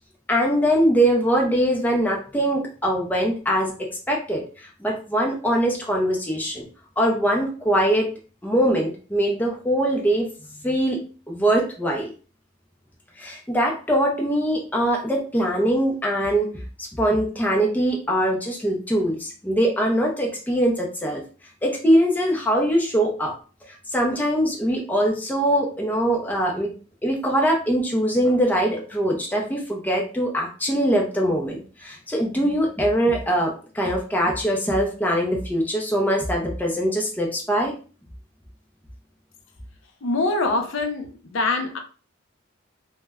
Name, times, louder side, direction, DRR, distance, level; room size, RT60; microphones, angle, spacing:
voice 1, 0.3-6.6 7.0-8.1 8.4-10.3 10.6-11.0 11.3-12.1 13.2-16.5 16.8-21.2 21.6-23.3 23.7-26.7 27.0-37.8, equal, 10° left, 0.4 m, -22 dB
voice 2, 40.0-41.8, left 2 dB, 70° left, 0.5 m, -24 dB
2.1 x 2.1 x 3.4 m
head